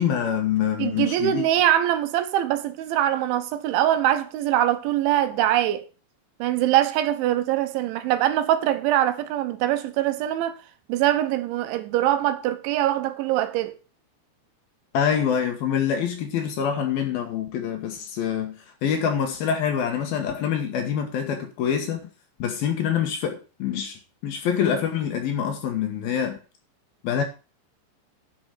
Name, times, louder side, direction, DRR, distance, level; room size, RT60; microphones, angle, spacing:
voice 1, 0.0-1.5 14.9-22.0 22.4-26.4 27.0-27.2, left 8 dB, 65° left, 2.8 m, -25 dB
voice 2, 0.8-5.9 6.4-10.6 10.9-13.8, right 13 dB, 85° right, 3.5 m, -23 dB
10.5 x 6.0 x 6.3 m
omnidirectional pair, 5.3 m